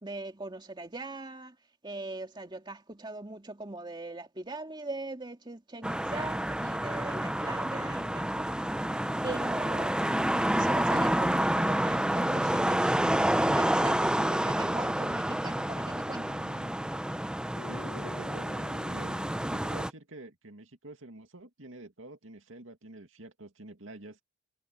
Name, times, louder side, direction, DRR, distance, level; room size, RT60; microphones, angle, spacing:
voice 1, 0.0-1.6 1.8-8.7 9.2-10.1 10.5-13.0 13.4-16.3, right 2 dB, 25° right, 2.4 m, -40 dB
sound 1, 5.8-19.9, right 1 dB, 5° right, 0.7 m, -29 dB
sound 2, 12.1-14.2 14.8-16.8 17.6-19.5, left 2 dB, 80° left, 1.3 m, -48 dB
voice 2, 17.7-18.5 18.9-24.2, right 2 dB, 80° right, 2.4 m, -48 dB
head